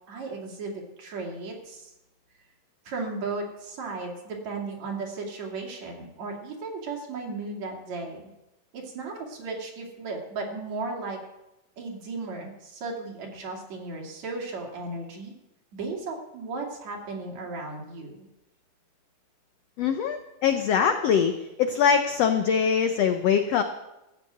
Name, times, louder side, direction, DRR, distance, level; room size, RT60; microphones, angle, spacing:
voice 1, 0.1-1.9 2.9-8.3 8.7-11.2 11.8-15.3 15.7-18.3, right 3 dB, 55° right, 0 dB, 3.6 m, -35 dB
voice 2, 19.8-23.6, left 7 dB, 85° left, 8 dB, 1.4 m, -23 dB
15.0 x 7.5 x 9.2 m, 0.94 s
omnidirectional pair, 4.0 m